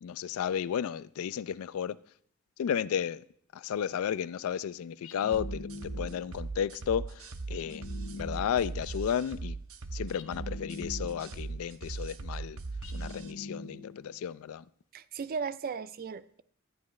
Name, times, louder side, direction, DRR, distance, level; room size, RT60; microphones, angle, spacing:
voice 1, 0.0-2.0 2.6-3.2 3.5-9.6 9.9-12.6 12.9-14.7, left 8 dB, 85° left, 0.3 m, -33 dB
sound 1, 5.0-6.4 7.5-8.9 10.1-11.5 12.8-14.2, left 2 dB, 60° left, 0.8 m, -44 dB
sound 2, 5.3-13.3, right 3 dB, 75° right, 0.7 m, -39 dB
voice 2, 14.9-16.4, right 5 dB, 45° right, 0.4 m, -36 dB
13.0 x 9.6 x 3.1 m
head